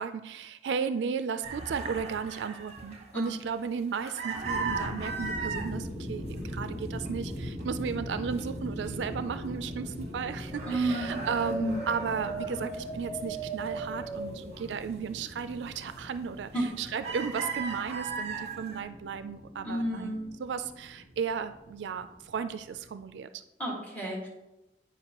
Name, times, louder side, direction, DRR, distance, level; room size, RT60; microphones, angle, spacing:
voice 1, 0.0-6.2 6.5-16.5 16.8-23.4, right 6 dB, 85° right, 11 dB, 0.4 m, -34 dB
sound 1, 1.4-5.7 6.2-6.7 7.0-8.4 8.9-9.0 9.2-10.2 10.5-13.3 13.6-14.7 15.2-15.4 15.9-16.3 16.6-18.8, right 4 dB, 40° right, 0.9 m, -38 dB
sound 2, 4.2-23.0, equal, 80° left, 1.9 m, -41 dB
sound 3, 8.8-15.7 16.2-20.9 22.7-22.8, right 3 dB, 25° left, 0.8 m, -43 dB
voice 2, 10.6-11.2 11.6-12.7 16.5-16.7 19.6-20.2 23.6-24.3, right 1 dB, 10° left, -4 dB, 1.8 m, -32 dB
9.0 x 4.9 x 2.9 m, 0.94 s
head